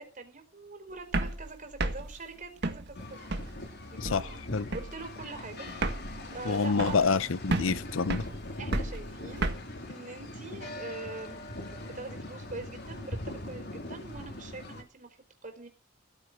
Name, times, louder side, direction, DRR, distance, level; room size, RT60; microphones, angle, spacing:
voice 1, 0.0-3.2 3.9-4.5 4.7-5.7 6.1-7.0 8.6-9.5 9.9-15.2 15.4-15.7, right 3 dB, 40° right, 4.4 m, -43 dB
sound 1, 1.0-3.7 4.0-4.4 4.7-5.1 5.4-5.5 5.7-7.2 7.5-9.6, right 2 dB, 60° right, 1.9 m, -33 dB
sound 2, 2.9-14.8, left 1 dB, 60° left, 3.7 m, -42 dB
voice 2, 4.0-4.7 6.4-8.3, left 4 dB, 85° left, 0.8 m, -28 dB
16.5 x 9.9 x 6.2 m
head